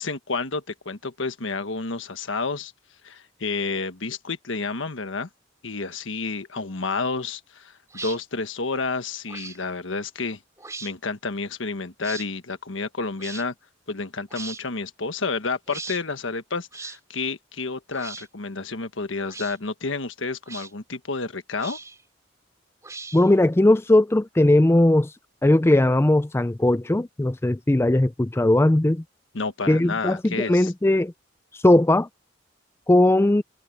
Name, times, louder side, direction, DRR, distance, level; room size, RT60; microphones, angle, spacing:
voice 1, 0.0-2.7 3.0-5.3 5.6-10.4 10.8-13.5 13.9-21.8 29.3-30.7, left 4 dB, 85° left, 1.4 m, -30 dB
sound 1, 7.9-8.2 9.3-9.6 10.6-10.9 12.0-12.3 13.2-13.4 14.3-14.6 15.7-16.0 16.7-17.0 17.9-18.3 19.2-19.6 20.5-20.7 21.6-22.0 22.8-23.4, right 4 dB, 15° right, 3.5 m, -38 dB
voice 2, 23.1-25.1 25.4-29.0 29.7-31.1 31.6-32.1 32.9-33.4, left 1 dB, 15° left, 0.4 m, -18 dB
head